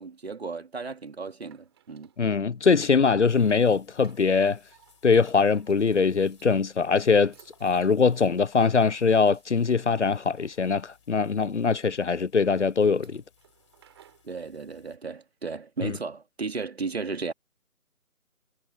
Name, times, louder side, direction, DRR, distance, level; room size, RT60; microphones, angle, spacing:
voice 1, 0.0-2.1 14.3-17.3, right 4 dB, 45° right, 2.4 m, -35 dB
sound 1, 1.1-14.3, right 11 dB, 20° right, 7.6 m, -61 dB
voice 2, 2.2-4.6 5.0-7.3 7.6-13.2 15.8-16.0, left 5 dB, 55° left, 0.6 m, -22 dB
sound 2, 3.3-15.0, left 8 dB, 20° left, 4.4 m, -62 dB
figure-of-eight pair, 170°, 43 cm